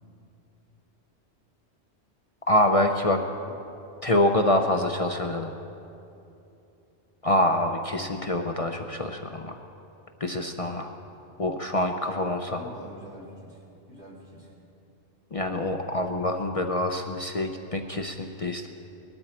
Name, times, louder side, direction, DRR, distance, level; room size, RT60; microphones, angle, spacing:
voice 1, 2.5-3.2 4.0-5.5 7.2-9.6 10.2-10.9 11.4-12.6 15.3-18.7, left 1 dB, 40° left, 4 dB, 0.6 m, -25 dB
voice 2, 12.5-14.5, equal, 80° right, -5 dB, 3.8 m, -45 dB
19.5 x 13.0 x 4.4 m, 2.8 s
omnidirectional pair, 1.2 m